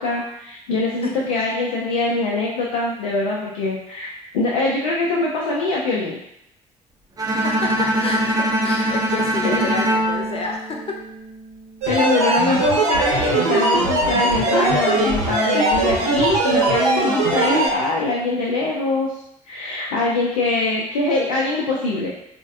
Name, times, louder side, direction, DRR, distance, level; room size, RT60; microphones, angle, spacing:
voice 1, 0.0-6.2 9.4-9.7 11.9-19.1 19.5-22.1, left 3 dB, 75° left, -3 dB, 0.4 m, -23 dB
Bowed string instrument, 7.2-11.3, right 1 dB, 20° right, 0.5 m, -22 dB
voice 2, 7.4-11.0 12.3-12.4, left 3 dB, 35° left, 1 dB, 0.7 m, -29 dB
sound 1, 11.8-17.7, right 2 dB, 70° right, 0.7 m, -20 dB
3.8 x 2.1 x 2.5 m, 0.76 s
figure-of-eight pair, 45°, 17 cm